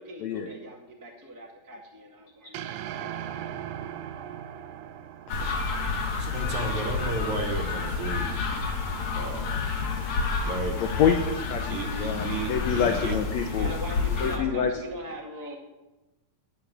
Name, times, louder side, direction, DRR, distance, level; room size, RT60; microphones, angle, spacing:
voice 1, 0.0-3.6 13.6-15.6, equal, 15° right, -1 dB, 0.7 m, -41 dB
sound 1, 2.5-6.9, right 10 dB, 80° right, 2.3 m, -39 dB
sound 2, 5.3-14.4, left 4 dB, 50° left, 1.8 m, -29 dB
voice 2, 6.1-8.4 9.2-9.7 10.4-10.9 11.7-13.2, right 3 dB, 60° right, 4 dB, 2.4 m, -33 dB
voice 3, 10.8-11.2 11.5-13.7 14.2-14.7, left 8 dB, 80° left, 5 dB, 1.6 m, -26 dB
11.5 x 6.9 x 9.3 m, 1.1 s
omnidirectional pair, 4.1 m